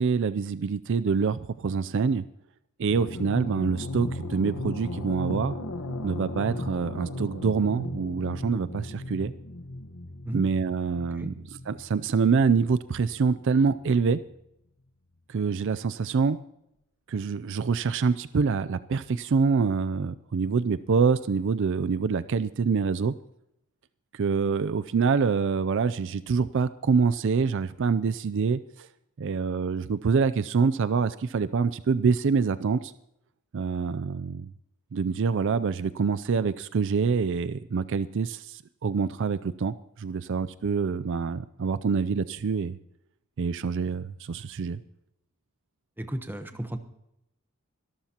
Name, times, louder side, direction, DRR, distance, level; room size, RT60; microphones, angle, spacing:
voice 1, 0.0-2.3 2.8-5.6 6.0-9.3 10.3-11.3 11.7-14.2 15.3-16.4 17.1-23.1 24.1-28.9 29.2-32.9 33.5-34.5 34.9-42.8 43.4-44.8, right 5 dB, 55° right, 15 dB, 0.4 m, -26 dB
sound 1, 2.9-14.4, left 1 dB, 80° left, 1.3 m, -37 dB
voice 2, 46.0-46.8, right 1 dB, 10° right, 8 dB, 1.0 m, -33 dB
24.5 x 13.0 x 2.9 m, 0.81 s
head